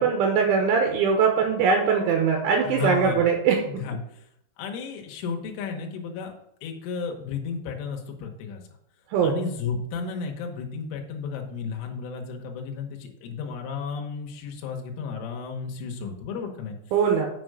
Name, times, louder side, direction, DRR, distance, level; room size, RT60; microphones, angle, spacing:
voice 1, 0.0-3.6 9.1-9.3 16.9-17.3, right 6 dB, 80° right, 2 dB, 3.2 m, -21 dB
voice 2, 2.6-3.3 3.7-4.0 4.6-6.3 6.6-8.6 9.2-16.8, left 5 dB, 80° left, 2 dB, 3.6 m, -33 dB
7.2 x 6.5 x 4.8 m, 0.75 s
omnidirectional pair, 5.8 m